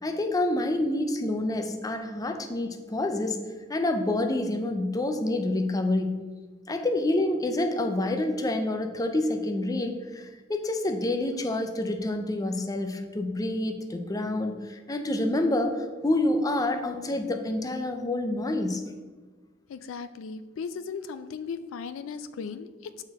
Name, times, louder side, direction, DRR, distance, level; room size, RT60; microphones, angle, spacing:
voice 1, 0.0-3.4 3.7-6.2 6.7-18.8, left 1 dB, 20° left, 6 dB, 0.5 m, -28 dB
voice 2, 19.7-23.0, left 5 dB, 90° left, 12 dB, 0.3 m, -37 dB
6.2 x 4.3 x 4.7 m, 1.3 s
head